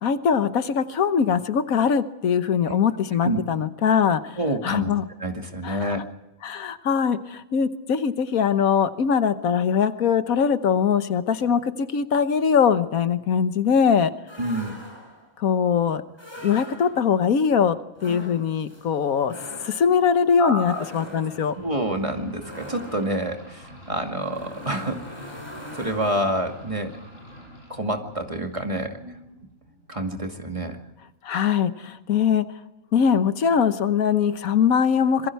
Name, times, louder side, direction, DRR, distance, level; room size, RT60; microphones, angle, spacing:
voice 1, 0.0-4.4 4.6-5.0 5.6-6.0 6.4-14.1 15.4-16.0 16.4-19.3 19.6-21.5 31.2-32.4 32.9-35.3, left 7 dB, 85° left, 10 dB, 1.5 m, -22 dB
voice 2, 4.4-4.9 5.2-6.0 14.4-14.8 20.4-20.8 21.6-25.3 25.7-27.0 27.7-29.0 29.9-30.8, right 1 dB, 25° right, 3 dB, 2.3 m, -28 dB
sound 1, 14.3-15.3 16.1-17.2 17.9-26.7, left 1 dB, 20° left, 5.7 m, -42 dB
sound 2, 20.8-30.2, equal, 45° left, 7.5 m, -46 dB
26.5 x 22.5 x 4.7 m, 0.95 s
omnidirectional pair, 1.4 m